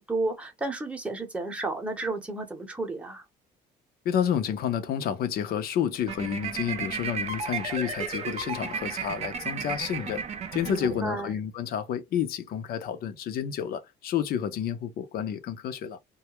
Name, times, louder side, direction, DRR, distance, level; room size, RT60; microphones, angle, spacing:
voice 1, 0.0-3.2 10.6-11.3, right 2 dB, 5° right, 0.8 m, -32 dB
voice 2, 4.0-10.2 10.5-16.0, left 9 dB, 65° left, 0.6 m, -30 dB
sound 1, 6.0-11.3, right 6 dB, 40° right, 0.6 m, -34 dB
2.2 x 2.1 x 2.9 m
cardioid pair, 110°, 17 cm